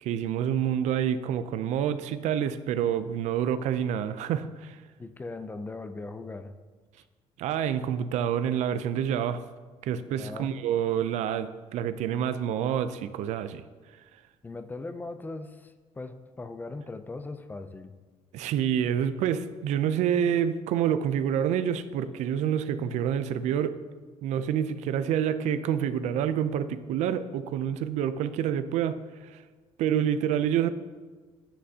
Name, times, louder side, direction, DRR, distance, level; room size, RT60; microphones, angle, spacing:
voice 1, 0.0-4.8 7.4-9.4 9.8-13.6 18.3-23.8 24.2-29.4 29.8-30.7, right 9 dB, 80° right, 12 dB, 0.4 m, -27 dB
voice 2, 5.0-6.5 10.2-10.5 14.4-17.9, left 3 dB, 15° left, 10 dB, 0.4 m, -39 dB
9.9 x 7.8 x 2.8 m, 1.4 s
cardioid pair, 140°, 12 cm